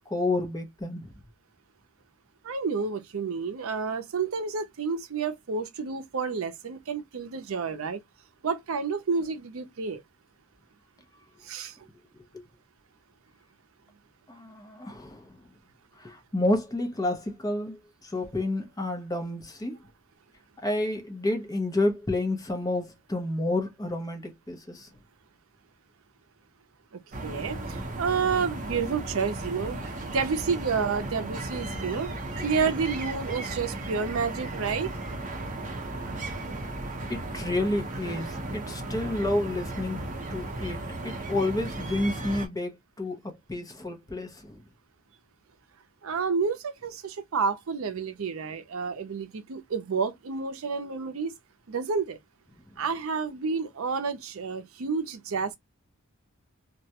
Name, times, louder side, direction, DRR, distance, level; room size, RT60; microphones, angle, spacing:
voice 1, 0.1-1.1 12.3-12.4 14.3-15.3 16.0-19.8 20.6-24.9 37.1-44.6, left 2 dB, 15° left, 0.6 m, -30 dB
voice 2, 2.4-8.0 8.4-10.0 11.4-11.8 26.9-29.8 30.1-32.1 32.4-34.9 46.0-51.3 51.7-52.2 52.8-55.6, right 5 dB, 75° right, 0.5 m, -30 dB
sound 1, 27.1-42.5, right 2 dB, 40° right, 0.7 m, -35 dB
2.3 x 2.1 x 2.8 m
head